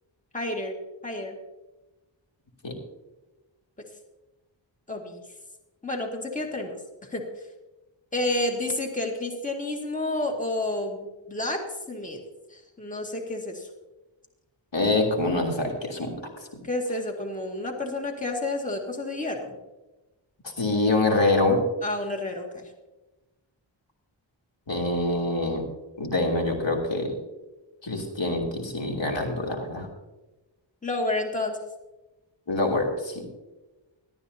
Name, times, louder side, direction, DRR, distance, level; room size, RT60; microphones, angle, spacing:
voice 1, 0.3-0.7 1.0-1.3 4.9-5.2 5.8-6.7 7.1-7.2 8.1-12.2 12.5-13.7 16.6-19.6 21.8-22.7 30.8-31.6, left 2 dB, 15° left, 2 dB, 2.2 m, -30 dB
voice 2, 14.7-16.1 20.6-21.6 24.7-25.6 26.0-27.1 27.8-29.9 32.5-33.2, left 2 dB, 65° left, 0 dB, 3.2 m, -25 dB
17.5 x 12.5 x 2.8 m, 1.1 s
cardioid pair, 45°, 47 cm